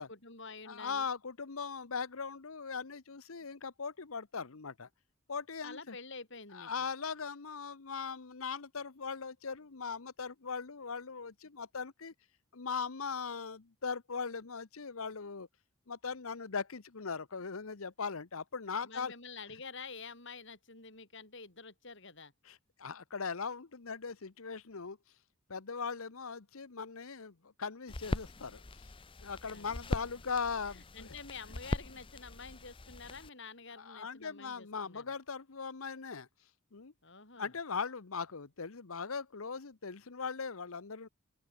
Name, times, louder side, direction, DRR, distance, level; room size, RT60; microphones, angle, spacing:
voice 1, 0.0-1.1 5.6-6.7 18.8-22.3 29.5-29.8 30.7-35.1 37.0-37.5, left 4 dB, 60° left, 6.1 m, -48 dB
voice 2, 0.7-4.9 5.3-6.0 6.5-12.1 12.5-15.5 15.9-19.1 22.4-25.0 25.5-28.9 29.2-31.1 33.8-36.3 36.7-36.9 37.4-41.1, left 5 dB, 80° left, 1.0 m, -39 dB
sound 1, 27.9-33.3, left 2 dB, 25° left, 0.7 m, -41 dB
open air
head